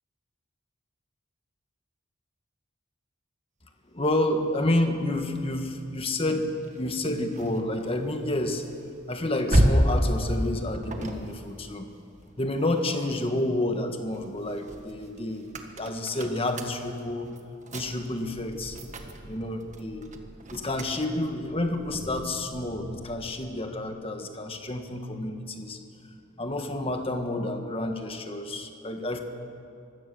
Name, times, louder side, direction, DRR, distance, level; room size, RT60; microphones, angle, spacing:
voice 1, 3.9-6.5 6.7-8.6 9.1-11.8 12.4-17.3 17.7-18.8 19.2-20.1 20.5-25.8 26.4-29.2, left 1 dB, 30° left, 5 dB, 1.6 m, -29 dB
sound 1, 6.6-13.2 13.6-23.4, equal, 35° right, 1.6 m, -32 dB
24.5 x 15.5 x 6.9 m, 2.5 s
head